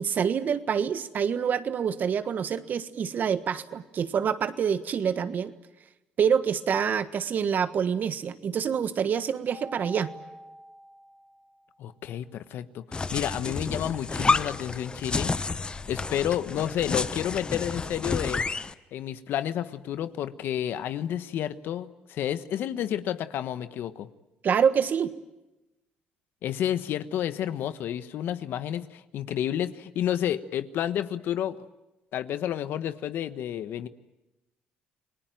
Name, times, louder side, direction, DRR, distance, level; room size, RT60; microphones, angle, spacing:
voice 1, 0.0-5.5 6.2-10.1 24.4-25.1, right 7 dB, 55° right, 12 dB, 1.4 m, -26 dB
Mallet percussion, 9.5-11.7, equal, 80° right, 4.0 m, -46 dB
voice 2, 11.8-15.3 15.9-18.4 18.9-24.1 26.4-31.7 32.1-33.9, left 10 dB, 70° left, 12 dB, 1.2 m, -30 dB
sound 1, 12.9-18.7, left 4 dB, 25° left, 1.0 m, -30 dB
29.5 x 19.0 x 9.1 m, 1.0 s
supercardioid pair, 80°, 4 cm